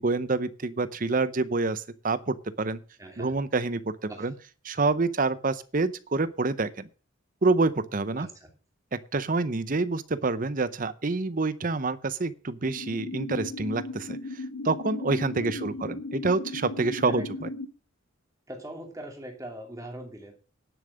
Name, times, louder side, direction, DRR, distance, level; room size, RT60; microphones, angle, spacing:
voice 1, 0.0-2.8 3.2-4.3 4.6-6.9 7.4-8.3 9.1-17.5, right 3 dB, 40° right, 15 dB, 0.7 m, -27 dB
voice 2, 3.0-3.3 4.1-4.3 8.2-8.5 15.4-16.0 17.0-17.3 18.5-20.3, right 1 dB, 15° right, 2 dB, 2.8 m, -42 dB
sound 1, 12.7-17.7, left 2 dB, 90° left, 1.9 m, -36 dB
10.5 x 7.3 x 6.4 m, 0.36 s
head